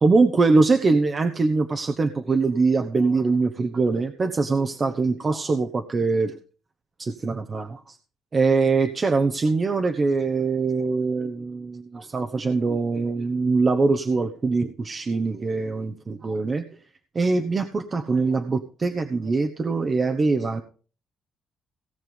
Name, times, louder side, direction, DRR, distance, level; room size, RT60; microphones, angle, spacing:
voice 1, 0.0-6.3 7.0-7.9 8.3-16.6 17.1-20.6, right 3 dB, 35° right, 6 dB, 1.1 m, -23 dB
18.0 x 6.1 x 5.3 m, 0.40 s
cardioid pair, 90°, 0 cm